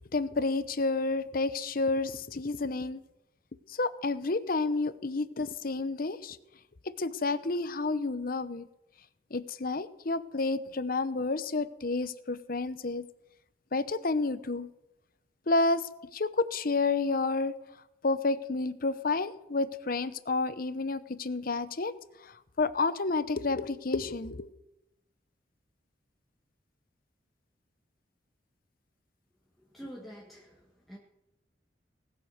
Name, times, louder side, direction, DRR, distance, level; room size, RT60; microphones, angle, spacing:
voice 1, 0.1-3.0 3.7-6.4 6.8-8.7 9.3-13.1 13.7-14.7 15.5-17.5 18.0-24.5, left 3 dB, 50° left, 14 dB, 0.8 m, -30 dB
voice 2, 29.6-31.0, equal, ahead, -4 dB, 1.9 m, -47 dB
19.0 x 9.4 x 6.6 m, 0.89 s
head